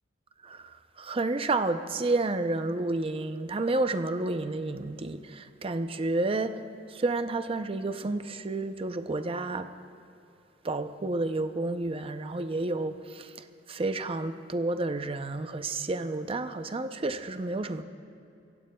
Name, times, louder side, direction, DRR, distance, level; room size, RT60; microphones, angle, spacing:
voice 1, 0.4-6.6 6.9-9.7 10.6-13.3 13.7-17.8, right 2 dB, 30° right, 9 dB, 0.5 m, -30 dB
24.5 x 16.0 x 2.3 m, 2.6 s
head